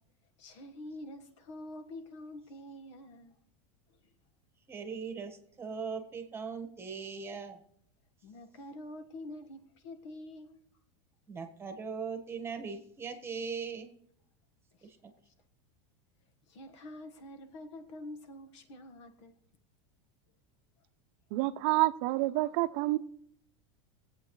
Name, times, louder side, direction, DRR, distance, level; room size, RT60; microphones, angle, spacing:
voice 1, 0.4-3.4 3.9-4.1 8.2-10.6 14.8-14.9 15.2-15.3 16.5-19.3, left 1 dB, 80° left, 1.5 m, -47 dB
voice 2, 4.7-7.6 11.3-13.9 14.8-15.1, right 5 dB, 15° right, 1.4 m, -39 dB
voice 3, 21.3-23.0, right 18 dB, 55° right, 0.6 m, -28 dB
22.5 x 8.3 x 3.2 m
supercardioid pair, 140°, 15 cm